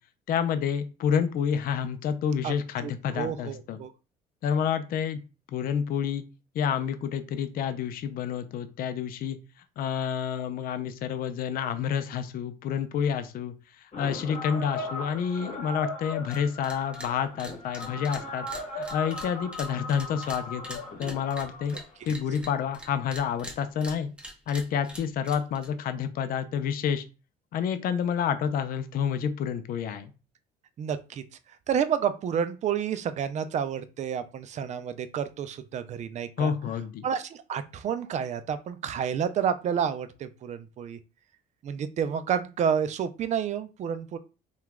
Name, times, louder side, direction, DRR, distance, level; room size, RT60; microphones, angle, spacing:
voice 1, 0.3-3.8 4.4-5.2 5.5-6.2 6.5-9.4 9.8-18.5 18.8-21.8 22.1-24.1 24.5-27.0 27.5-30.1 36.4-37.1, left 7 dB, 60° left, 10 dB, 0.5 m, -29 dB
voice 2, 2.8-3.9 30.8-31.2 31.7-36.5 37.0-41.0 41.6-44.2, right 8 dB, 45° right, 11 dB, 0.4 m, -30 dB
sound 1, 13.9-22.4, left 2 dB, 45° left, 1.2 m, -38 dB
sound 2, 16.2-16.4 16.6-17.1 17.4-22.9 23.1-25.7, right 1 dB, 5° right, 0.8 m, -43 dB
2.8 x 2.3 x 3.4 m, 0.32 s
cardioid pair, 110°, 17 cm